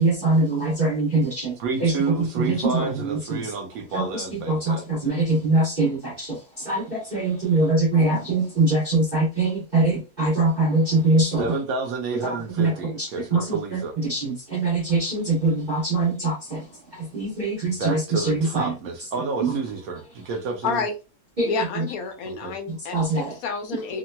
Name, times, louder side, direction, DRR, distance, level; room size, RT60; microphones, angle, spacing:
voice 1, 0.0-3.5 3.9-11.5 12.2-18.7 19.4-19.6 21.4-21.9 22.7-23.3, right 2 dB, 35° right, 1.0 m, -23 dB
voice 2, 1.6-4.8 11.4-13.9 17.7-20.8 22.3-22.5, right 4 dB, 70° right, 1.1 m, -30 dB
voice 3, 20.6-20.9 21.5-24.0, left 5 dB, 70° left, 1.1 m, -29 dB
2.9 x 2.8 x 2.2 m
omnidirectional pair, 1.7 m